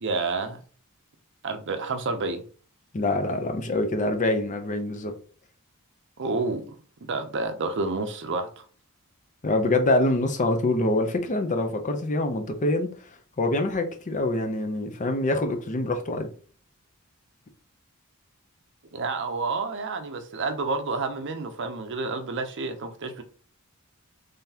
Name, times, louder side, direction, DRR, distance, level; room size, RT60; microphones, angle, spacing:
voice 1, 0.0-0.6 1.4-2.4 6.2-8.6 18.9-23.2, right 3 dB, 55° right, 0.6 m, -29 dB
voice 2, 2.9-5.1 9.4-12.9 13.4-16.3, left 2 dB, 35° left, 0.6 m, -25 dB
3.8 x 3.4 x 2.8 m
head